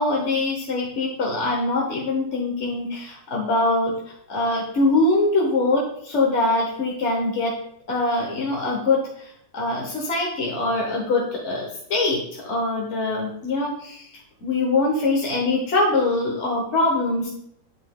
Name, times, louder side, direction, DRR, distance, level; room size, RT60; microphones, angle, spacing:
voice 1, 0.0-7.5 7.9-14.1 14.4-17.3, left 2 dB, 45° left, -2 dB, 1.1 m, -23 dB
10.0 x 4.9 x 2.3 m, 0.71 s
omnidirectional pair, 2.0 m